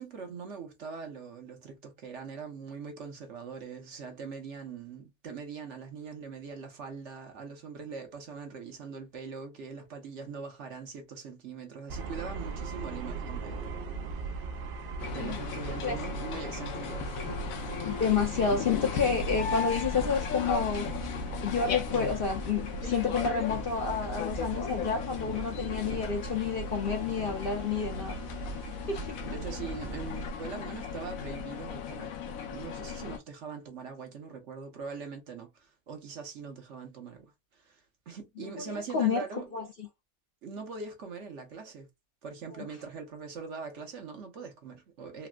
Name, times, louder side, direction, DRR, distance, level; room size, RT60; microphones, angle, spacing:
voice 1, 0.0-13.8 15.1-17.4 29.3-39.5 40.4-41.9 42.2-45.3, right 5 dB, 60° right, 1.1 m, -42 dB
sound 1, 11.9-30.3, right 4 dB, 75° right, 0.5 m, -39 dB
sound 2, 15.0-33.2, left 7 dB, 75° left, 1.1 m, -37 dB
voice 2, 17.9-20.9 21.4-28.2 28.9-29.3 38.4-39.2 39.5-39.9 42.5-42.7, left 5 dB, 55° left, 0.7 m, -30 dB
4.1 x 2.0 x 2.3 m
omnidirectional pair, 1.5 m